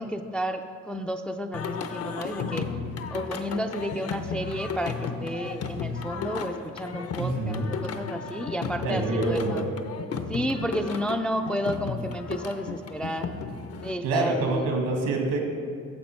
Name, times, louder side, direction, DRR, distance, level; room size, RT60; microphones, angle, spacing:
voice 1, 0.0-2.7 3.1-9.6 10.3-13.3 13.8-14.7, equal, 5° left, 6 dB, 0.3 m, -31 dB
Singing, 1.5-13.9, left 5 dB, 55° left, 0.6 m, -34 dB
voice 2, 7.2-7.7 8.8-9.7 14.0-15.4, right 2 dB, 80° right, 2 dB, 1.6 m, -26 dB
9.5 x 6.7 x 4.4 m, 2.2 s
cardioid pair, 90°, 30 cm